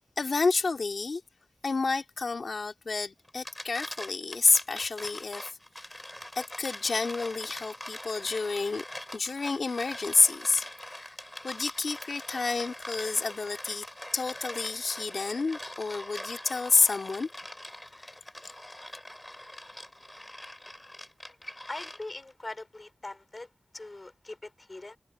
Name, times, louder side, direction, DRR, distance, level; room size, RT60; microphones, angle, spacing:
voice 1, 0.2-1.2 1.6-5.6 6.4-8.8 9.1-11.2 11.4-13.9 14.1-17.3 18.4-18.5, left 4 dB, 75° left, 2.1 m, -29 dB
sound 1, 3.3-22.3, left 1 dB, 15° left, 6.3 m, -43 dB
voice 2, 21.7-23.5 23.7-25.0, left 2 dB, 40° left, 4.1 m, -41 dB
cardioid pair, 50°, 0 cm